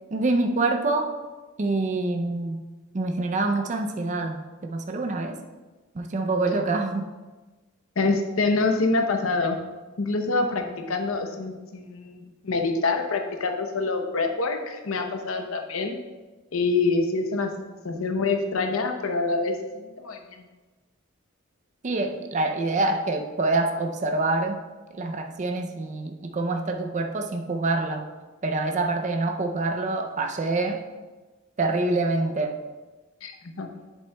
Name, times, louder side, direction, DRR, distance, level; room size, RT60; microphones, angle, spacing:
voice 1, 0.1-1.1 1.6-2.6 2.9-5.4 5.9-7.1 21.8-24.6 24.9-28.1 28.4-30.8 31.6-32.6, right 2 dB, 35° right, 4 dB, 0.5 m, -26 dB
voice 2, 8.0-9.6 10.0-16.0 16.5-20.5 33.2-33.7, left 3 dB, 80° left, 5 dB, 0.8 m, -26 dB
8.0 x 7.3 x 2.2 m, 1.3 s
head